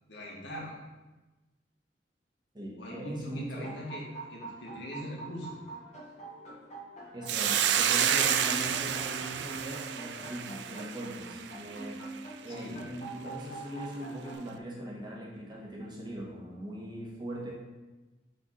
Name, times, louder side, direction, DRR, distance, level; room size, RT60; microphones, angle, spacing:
voice 1, 0.1-0.8 2.8-4.0 4.3-5.6 12.5-12.8, equal, 80° left, -4 dB, 1.8 m, -41 dB
voice 2, 2.5-3.7 7.1-17.5, right 1 dB, 25° right, -3 dB, 1.4 m, -41 dB
sound 1, 3.5-14.3, right 2 dB, 40° left, 1.6 m, -45 dB
Hiss, 7.3-11.8, right 9 dB, 70° right, 0.4 m, -29 dB
6.3 x 3.5 x 5.4 m, 1.1 s
head